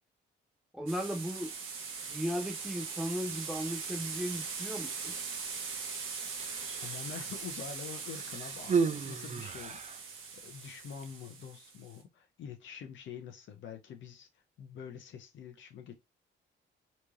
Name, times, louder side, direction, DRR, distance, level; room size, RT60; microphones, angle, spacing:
voice 1, 0.7-1.5 2.1-5.1, equal, 5° right, 1.5 m, -36 dB
sound 1, 0.9-11.9, right 5 dB, 90° right, 1.4 m, -41 dB
Human voice, 6.3-7.2 8.1-10.0 10.9-11.1, right 5 dB, 35° right, 0.5 m, -34 dB
voice 2, 6.8-14.3 14.6-15.9, left 7 dB, 70° left, 1.1 m, -46 dB
4.4 x 3.1 x 2.5 m
cardioid pair, 90°, 20 cm